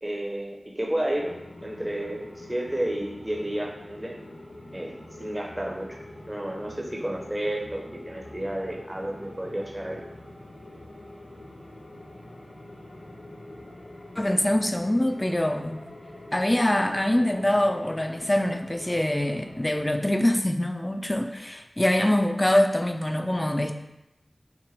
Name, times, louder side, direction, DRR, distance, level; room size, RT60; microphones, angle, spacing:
voice 1, 0.0-1.3 1.6-4.2 4.7-4.9 5.2-6.0 6.3-10.0, right 1 dB, 20° right, -1 dB, 0.7 m, -31 dB
sound 1, 1.1-19.9, left 1 dB, 85° left, 1.3 m, -44 dB
voice 2, 14.2-15.8 16.3-23.7, left 1 dB, 20° left, 6 dB, 0.4 m, -24 dB
5.8 x 2.2 x 3.1 m, 0.91 s
wide cardioid pair, 45°, 0 cm